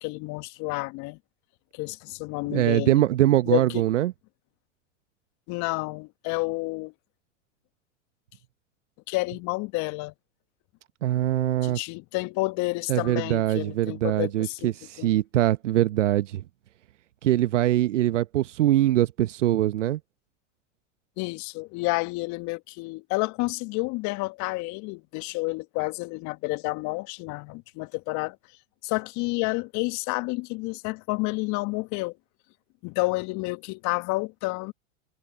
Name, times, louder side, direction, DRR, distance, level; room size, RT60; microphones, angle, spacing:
voice 1, 0.0-1.2 1.7-3.0 3.5-3.9 5.5-6.9 9.1-10.1 11.6-14.7 15.0-15.1 21.2-28.4 28.8-32.2 32.8-34.7, left 25 dB, 50° left, 1.6 m, -30 dB
voice 2, 2.5-4.1 11.0-11.8 12.9-16.4 17.2-20.0, right 13 dB, 75° right, 1.0 m, -23 dB
hypercardioid pair, 85°, 37 cm